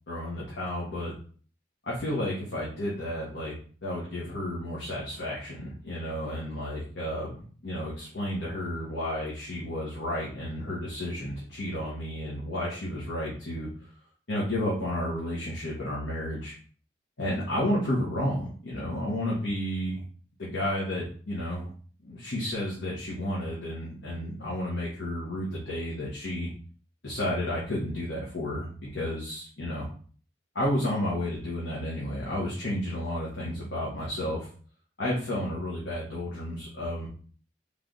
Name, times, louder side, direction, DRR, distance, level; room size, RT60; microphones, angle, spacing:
voice 1, 0.1-1.1 1.8-3.5 3.8-13.9 14.3-16.5 17.2-20.0 20.4-21.7 22.0-26.5 27.0-29.9 30.5-34.5 35.0-37.1, left 1 dB, 85° left, -6 dB, 1.2 m, -32 dB
3.3 x 3.2 x 3.9 m, 0.43 s
head